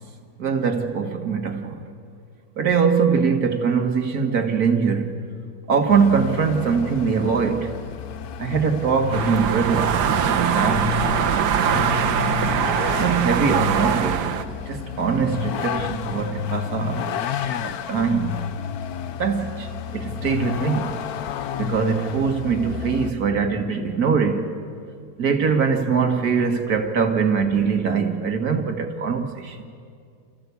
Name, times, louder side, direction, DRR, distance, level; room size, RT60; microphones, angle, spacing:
voice 1, 0.4-1.9 2.6-5.1 5.7-7.7 8.4-11.1 13.0-14.4 14.7-18.4 19.2-21.0 21.6-24.6 25.2-29.6, right 6 dB, 65° right, 1.9 m, -22 dB
Vehicle, 5.9-23.1, left 9 dB, 70° left, 1.2 m, -31 dB
sound 1, 9.1-14.4, right 8 dB, 85° right, 1.5 m, -22 dB
29.5 x 14.5 x 8.3 m
omnidirectional pair, 1.7 m